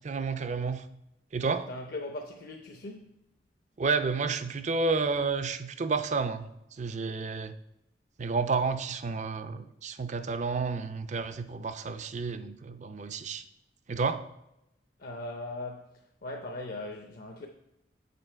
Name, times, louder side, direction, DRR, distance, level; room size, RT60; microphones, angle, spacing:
voice 1, 0.0-0.9 1.3-1.7 3.8-7.5 8.2-13.4 13.9-14.2, right 4 dB, 40° right, 0.5 m, -31 dB
voice 2, 1.7-3.2 15.0-15.9 16.2-17.5, left 2 dB, 55° left, 0.7 m, -39 dB
6.9 x 6.3 x 4.4 m
head